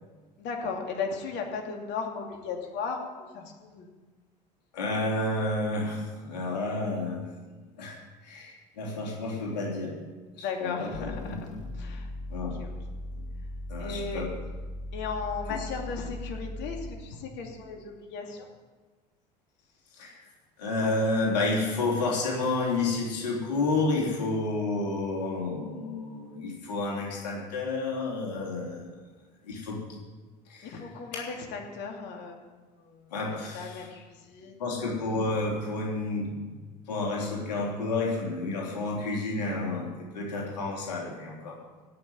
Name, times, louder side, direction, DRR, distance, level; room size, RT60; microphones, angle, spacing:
voice 1, 0.4-3.9 10.4-13.0 13.8-14.2 14.9-18.5 30.6-32.3 32.8-34.6, left 5 dB, 55° left, 2 dB, 2.9 m, -36 dB
voice 2, 4.7-7.3 7.7-8.0 8.2-10.0 10.4-11.4 12.3-12.6 13.7-14.3 15.5-15.6 19.9-20.2 20.6-28.9 29.4-29.8 30.5-30.9 31.1-31.3 33.1-33.9 34.6-36.5 36.9-39.9 40.1-41.6, left 2 dB, 80° left, -2 dB, 3.3 m, -30 dB
sound 1, 10.9-17.1, left 1 dB, 35° left, 2.2 m, -38 dB
16.5 x 6.3 x 9.3 m, 1.3 s
hypercardioid pair, 70°, 21 cm